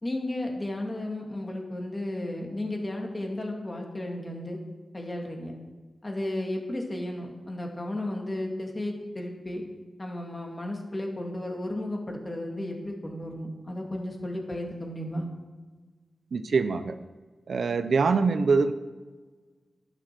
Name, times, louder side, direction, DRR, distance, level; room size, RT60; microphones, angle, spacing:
voice 1, 0.0-4.6 4.9-5.6 6.0-9.6 10.0-15.3, left 1 dB, 25° left, 1 dB, 2.4 m, -33 dB
voice 2, 16.3-17.0 17.5-18.7, right 4 dB, 70° right, 10 dB, 0.7 m, -24 dB
11.5 x 9.2 x 6.0 m, 1.4 s
wide cardioid pair, 95°, 0 cm